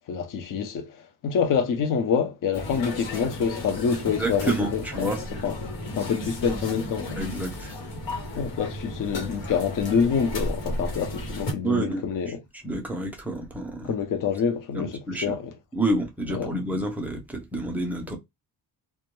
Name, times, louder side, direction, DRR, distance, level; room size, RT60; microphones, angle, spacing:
voice 1, 0.1-5.1 5.4-5.5 6.0-7.2 8.4-12.4 13.8-15.5 16.3-16.6, left 6 dB, 50° left, 0.5 m, -26 dB
sound 1, 2.5-11.5, left 1 dB, 85° left, 1.0 m, -34 dB
voice 2, 4.2-5.2 7.2-7.7 11.6-12.0 12.6-13.9 14.7-15.4 15.7-18.2, right 1 dB, 5° right, 0.3 m, -28 dB
2.1 x 2.1 x 2.9 m
cardioid pair, 155°, 43 cm